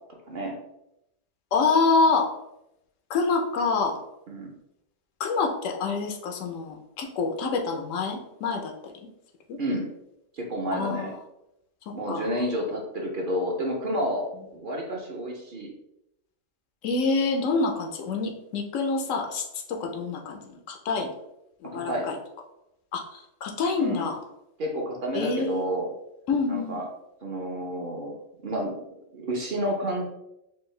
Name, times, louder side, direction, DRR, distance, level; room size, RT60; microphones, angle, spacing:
voice 1, 1.5-2.3 3.1-4.0 5.2-8.9 9.5-9.6 10.7-11.2 12.1-12.3 16.8-21.1 21.6-22.2 22.9-24.2 25.1-25.6 26.3-26.8, left 4 dB, 85° left, 4 dB, 1.1 m, -26 dB
voice 2, 10.3-11.1 11.9-15.7 21.7-22.1 23.8-24.1 24.6-25.9 26.5-26.9 27.2-28.1 28.4-28.8 29.1-30.0, equal, 50° right, 0 dB, 0.7 m, -30 dB
4.5 x 2.6 x 3.1 m, 0.83 s
omnidirectional pair, 1.3 m